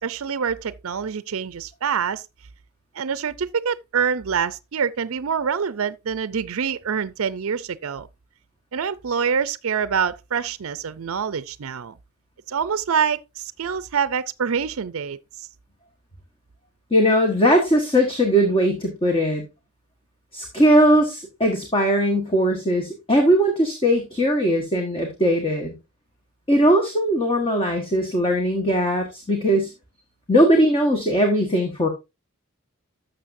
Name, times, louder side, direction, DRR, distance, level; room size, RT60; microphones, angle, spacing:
voice 1, 0.0-2.2 2.9-8.1 8.7-12.0 12.5-15.2, right 6 dB, 65° right, 0.5 m, -26 dB
voice 2, 16.9-19.4 20.3-25.7 26.5-29.7 30.3-31.9, equal, 25° left, 1.3 m, -19 dB
12.0 x 6.8 x 2.6 m
head